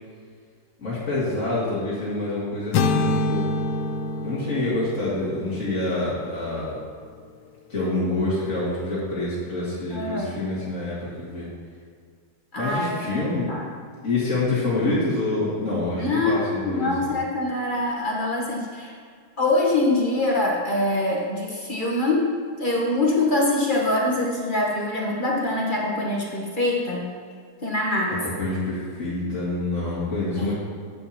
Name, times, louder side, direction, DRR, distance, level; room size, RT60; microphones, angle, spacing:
voice 1, 0.8-3.5 4.2-6.8 7.7-11.5 12.6-13.5 14.0-17.1 28.2-30.5, left 2 dB, 50° left, -12 dB, 2.4 m, -27 dB
sound 1, 2.7-6.8, left 2 dB, 80° left, 1.2 m, -27 dB
voice 2, 9.9-10.5 12.5-13.0 13.5-13.7 16.0-18.9 19.4-22.3 22.6-27.0 27.6-28.1 30.4-30.5, left 2 dB, 35° left, -3 dB, 1.2 m, -24 dB
10.5 x 9.2 x 2.9 m, 2.1 s
omnidirectional pair, 1.8 m